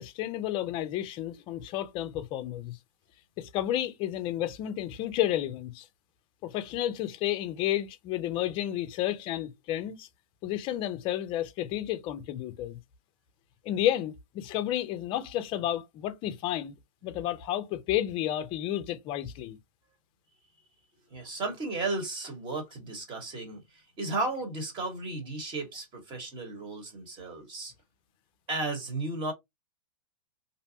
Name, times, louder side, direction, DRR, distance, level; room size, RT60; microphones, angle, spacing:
voice 1, 0.0-2.8 3.4-5.9 6.4-10.1 10.4-12.8 13.6-16.8 17.0-19.6, left 12 dB, 30° left, 0.4 m, -31 dB
voice 2, 21.1-27.7 28.5-29.3, right 2 dB, 25° right, 1.2 m, -34 dB
2.6 x 2.1 x 2.7 m
hypercardioid pair, 135°, 18 cm